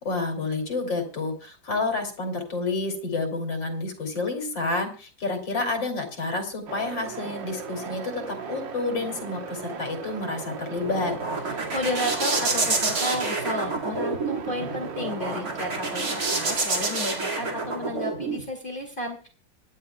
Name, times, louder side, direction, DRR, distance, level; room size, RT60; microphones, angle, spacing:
voice 1, 0.0-11.1, left 3 dB, 75° left, 3 dB, 3.6 m, -29 dB
sound 1, 6.7-16.6, right 6 dB, 80° right, 2.0 m, -38 dB
sound 2, 10.5-18.4, right 3 dB, 55° right, 2.6 m, -28 dB
voice 2, 11.7-19.3, left 1 dB, 25° left, 2 dB, 2.5 m, -32 dB
25.5 x 10.5 x 2.3 m, 0.36 s
omnidirectional pair, 2.0 m